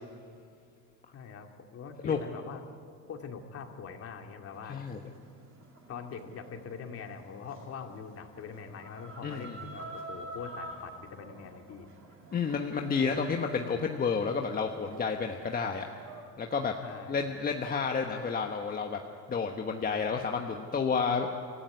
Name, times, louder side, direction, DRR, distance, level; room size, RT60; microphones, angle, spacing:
voice 1, 1.1-2.8 3.1-4.8 5.9-11.9 13.0-13.3 16.8-17.2, left 6 dB, 40° left, 4 dB, 2.4 m, -43 dB
Chicken rooster, 4.5-16.2, right 2 dB, 35° right, 7.5 m, -49 dB
voice 2, 4.7-5.0 9.2-9.6 12.3-15.9 16.4-16.7 17.1-19.0 19.3-21.3, left 5 dB, 25° left, 3 dB, 1.2 m, -30 dB
26.0 x 15.5 x 9.5 m, 2.4 s
cardioid pair, 130°, 37 cm